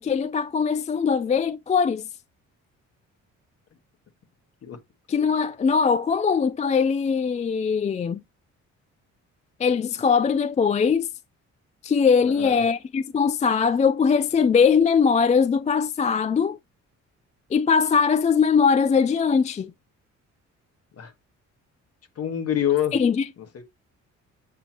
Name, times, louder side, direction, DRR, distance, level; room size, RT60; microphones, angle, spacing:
voice 1, 0.0-2.0 5.1-8.2 9.6-11.1 11.8-16.6 17.5-19.7 22.9-23.3, left 6 dB, 25° left, 0.4 m, -21 dB
voice 2, 12.2-12.6 21.0-21.1 22.2-23.0 23.5-23.6, left 10 dB, 55° left, 1.5 m, -26 dB
8.3 x 2.9 x 4.3 m
cardioid pair, 90°, 30 cm